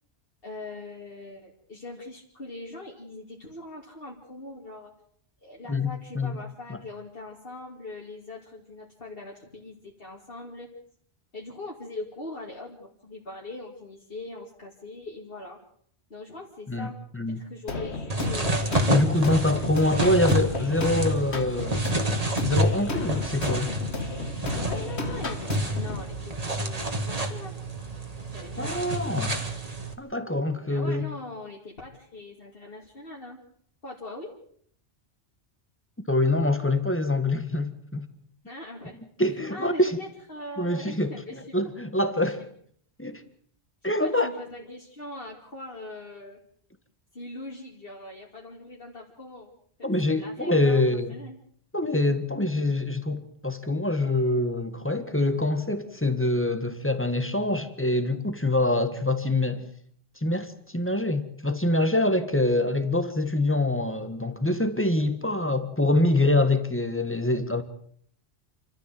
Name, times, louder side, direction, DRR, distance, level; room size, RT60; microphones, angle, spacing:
voice 1, 0.4-4.9 5.4-10.7 11.3-15.6 16.1-16.9 17.3-18.9 19.5-19.9 24.5-27.5 28.3-29.4 30.7-33.5 33.8-34.3 38.4-39.0 39.3-41.6 42.4-42.5 43.8-46.4 47.1-49.5 49.8-51.4, left 2 dB, 55° left, 3.0 m, -41 dB
voice 2, 5.7-6.4 6.7-6.8 16.7-17.4 18.9-22.0 22.4-23.8 28.6-29.3 30.0-31.1 36.1-38.1 39.2-40.0 40.6-41.2 41.5-42.4 43.0-43.2 43.8-44.3 49.8-51.2 51.7-59.7 60.2-67.6, left 2 dB, 10° left, 1.7 m, -25 dB
sound 1, 17.7-26.0, left 3 dB, 75° left, 2.0 m, -33 dB
sound 2, 18.1-29.9, right 1 dB, 35° right, 2.2 m, -29 dB
29.5 x 13.0 x 7.8 m
omnidirectional pair, 1.1 m